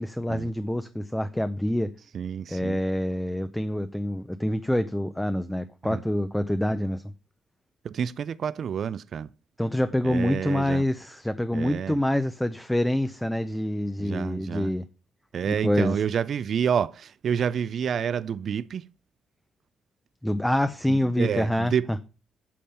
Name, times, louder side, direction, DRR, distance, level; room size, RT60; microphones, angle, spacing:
voice 1, 0.0-1.9 2.5-7.0 9.6-14.8 15.5-16.0 20.2-21.7, left 1 dB, 5° left, 0.6 m, -26 dB
voice 2, 2.1-2.8 5.9-6.0 7.8-9.3 10.0-10.8 11.5-12.0 14.0-14.7 15.3-18.8 20.9-21.9, right 8 dB, 50° right, 0.4 m, -29 dB
8.6 x 7.1 x 5.7 m
cardioid pair, 135°, 0 cm